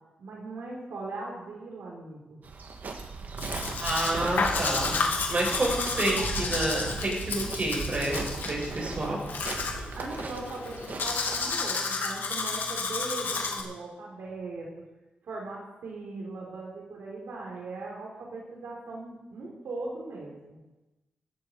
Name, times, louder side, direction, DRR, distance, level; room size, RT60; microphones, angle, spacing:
voice 1, 0.2-2.4 10.0-14.8 15.2-20.6, right 3 dB, 85° right, -3 dB, 4.0 m, -39 dB
sound 1, 2.4-11.5, right 4 dB, 60° right, 1.9 m, -38 dB
Domestic sounds home sounds, 3.4-13.6, left 4 dB, 75° left, 2.5 m, -32 dB
voice 2, 3.8-5.0 5.3-9.2, right 2 dB, 40° right, -2 dB, 6.9 m, -29 dB
16.0 x 13.0 x 4.8 m, 1.0 s
cardioid pair, 95°, 3 cm